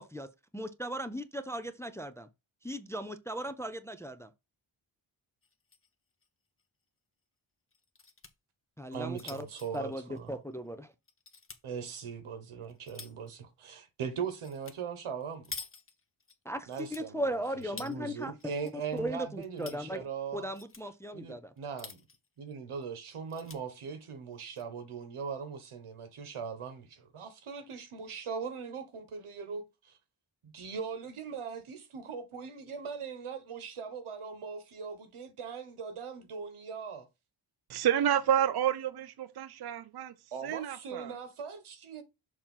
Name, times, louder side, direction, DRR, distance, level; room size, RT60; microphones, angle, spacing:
voice 1, 0.0-2.3 2.6-4.3 8.8-9.5 9.7-10.9 16.5-18.3 18.9-20.1 20.3-21.5, equal, 5° left, 0.4 m, -37 dB
sound 1, 5.4-5.9 6.2-6.3 6.6-6.7 7.7-8.3 8.8-10.7 11.1-11.6 12.2-13.3 14.4-14.8 15.0-16.3 16.7-18.0 18.4-19.0 19.3-19.8 20.4-20.8 21.6-22.3 22.7-22.8 23.1-23.6 24.3-24.6, left 4 dB, 25° left, 0.9 m, -48 dB
voice 2, 8.9-10.3 11.6-15.5 16.7-17.2 17.7-20.5 21.1-22.0 22.4-30.0 30.4-37.1 40.3-42.0, right 6 dB, 85° right, 1.4 m, -40 dB
voice 3, 37.7-40.1 40.4-41.2, right 10 dB, 55° right, 0.5 m, -29 dB
6.7 x 2.9 x 5.5 m
wide cardioid pair, 140°, 49 cm